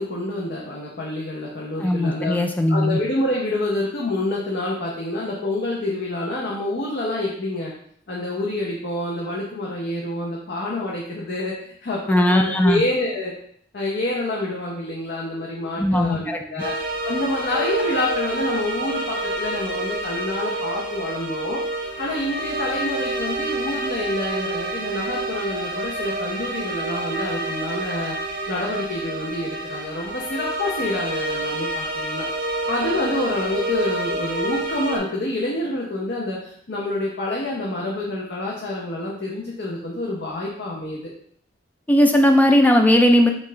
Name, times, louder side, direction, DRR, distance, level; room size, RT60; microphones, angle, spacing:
voice 1, 0.0-2.4 2.7-7.7 8.1-13.3 13.7-16.7 17.0-21.6 22.0-32.3 32.7-41.1, left 1 dB, 60° left, -4 dB, 0.7 m, -27 dB
voice 2, 1.8-3.0 12.1-12.8 15.8-16.4 41.9-43.3, left 1 dB, 10° left, 3 dB, 0.3 m, -17 dB
sound 1, 16.6-35.0, right 1 dB, 50° right, 0.7 m, -28 dB
5.3 x 2.4 x 3.3 m, 0.65 s
head